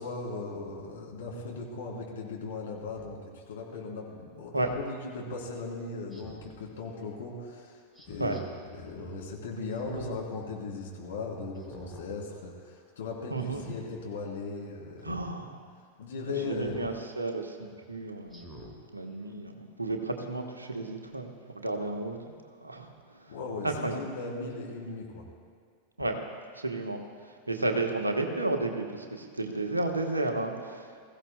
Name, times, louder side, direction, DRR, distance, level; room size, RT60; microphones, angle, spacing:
voice 1, 0.0-7.8 8.1-15.2 16.0-17.0 23.3-25.2, left 3 dB, 60° left, -2 dB, 3.0 m, -38 dB
Speech synthesizer, 3.0-3.1 4.6-4.9 6.1-6.6 7.9-8.4 9.7-10.2 10.6-10.7 11.6-12.1 12.5-12.8 13.4-13.8 15.0-15.3 16.6-17.0 17.5-17.6 18.3-18.8 19.2-19.3, right 1 dB, 5° right, 1.8 m, -47 dB
voice 2, 13.3-13.6 15.0-15.6 16.4-18.6 18.9-22.3 22.6-22.9 23.2-23.3 23.6-24.0 26.0-26.2 26.5-27.0 27.5-30.9, right 2 dB, 80° right, 4 dB, 1.1 m, -32 dB
21.5 x 15.0 x 2.2 m, 2.1 s
figure-of-eight pair, 90°, 0 cm